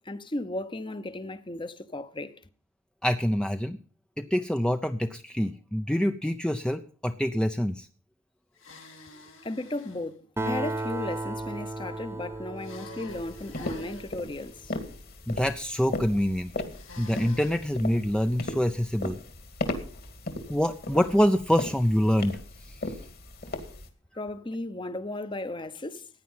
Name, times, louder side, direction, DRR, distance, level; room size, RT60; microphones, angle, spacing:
voice 1, 0.0-2.4 9.4-14.7 24.1-26.1, left 2 dB, 25° left, 0.9 m, -35 dB
voice 2, 3.0-3.8 4.2-7.9 15.3-16.5 17.0-19.2 20.5-23.0, equal, 5° left, 0.5 m, -26 dB
sound 1, 8.6-10.1 12.6-14.1 16.7-17.6, left 3 dB, 80° left, 3.3 m, -47 dB
Acoustic guitar, 10.4-14.2, right 2 dB, 10° right, 1.1 m, -35 dB
sound 2, 13.1-23.9, left 2 dB, 50° left, 2.3 m, -37 dB
15.5 x 9.9 x 5.6 m
head